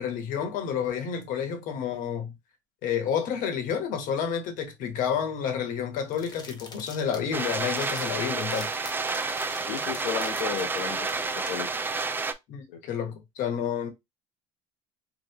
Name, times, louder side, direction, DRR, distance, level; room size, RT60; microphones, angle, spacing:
voice 1, 0.0-2.3 2.8-8.7 12.5-13.9, left 7 dB, 65° left, 1.0 m, -30 dB
sound 1, 6.1-11.8, left 4 dB, 30° left, 0.8 m, -45 dB
sound 2, 7.3-12.3, right 4 dB, 15° right, 0.3 m, -30 dB
voice 2, 9.7-11.7 12.7-12.9, left 8 dB, 80° left, 0.5 m, -34 dB
2.9 x 2.0 x 3.4 m
supercardioid pair, 90°, 15 cm